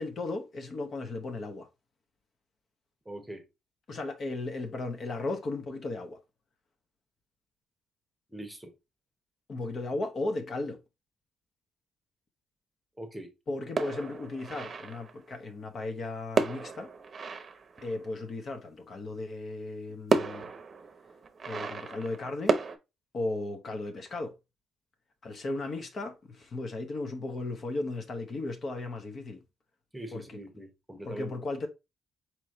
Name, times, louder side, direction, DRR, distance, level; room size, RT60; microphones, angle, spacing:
voice 1, 0.0-1.7 3.9-6.2 9.5-10.8 13.5-16.9 17.8-20.5 21.4-22.6 23.1-24.3 25.2-29.4 30.1-30.4 31.0-31.7, left 2 dB, 50° left, 1.0 m, -35 dB
voice 2, 3.0-3.4 8.3-8.7 13.0-13.3 29.9-31.3, right 1 dB, 5° right, 1.1 m, -42 dB
sound 1, 13.8-15.2 16.4-18.3 19.5-19.6 20.1-22.8, right 4 dB, 40° right, 0.7 m, -32 dB
4.5 x 3.1 x 3.8 m
cardioid pair, 90°, 0 cm